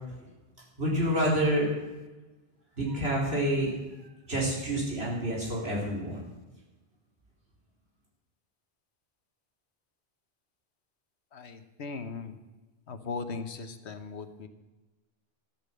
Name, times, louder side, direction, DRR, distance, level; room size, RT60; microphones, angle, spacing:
voice 1, 0.8-1.7 2.8-3.7 4.3-6.2, right 1 dB, 65° right, -4 dB, 4.3 m, -28 dB
voice 2, 11.3-12.4 12.9-14.5, left 4 dB, 80° left, 9 dB, 1.3 m, -38 dB
13.0 x 8.4 x 7.7 m, 1.2 s
omnidirectional pair, 1.1 m